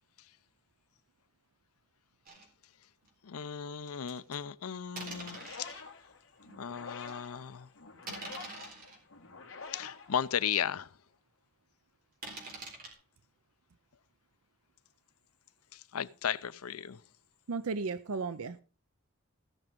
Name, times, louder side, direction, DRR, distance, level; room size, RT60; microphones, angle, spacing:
sound 1, 2.3-2.5 3.0-3.1 4.1-4.4 5.0-5.8 6.5-6.6 7.1-7.3 8.0-9.0 9.7-9.8 10.2-10.3 10.5-10.6 12.2-12.9, right 3 dB, 40° right, 3.8 m, -44 dB
voice 1, 3.2-5.7 6.6-7.7 9.7-10.9 15.7-17.0, left 8 dB, 90° left, 0.6 m, -35 dB
sound 2, 5.0-10.9, left 5 dB, 65° left, 2.2 m, -48 dB
voice 2, 17.5-18.6, right 4 dB, 85° right, 0.6 m, -35 dB
16.0 x 6.2 x 5.2 m
head